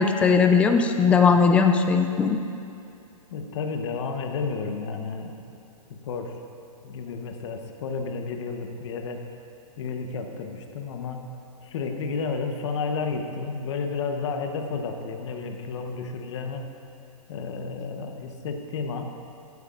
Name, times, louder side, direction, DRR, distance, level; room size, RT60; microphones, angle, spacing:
voice 1, 0.0-2.4, left 5 dB, 5° left, 6 dB, 0.3 m, -19 dB
voice 2, 3.3-5.4 5.9-6.4 6.8-9.2 9.8-11.3 11.6-16.7 17.3-19.0, left 4 dB, 50° left, 4 dB, 1.1 m, -31 dB
15.5 x 9.5 x 2.5 m, 2.7 s
hypercardioid pair, 140°, 19 cm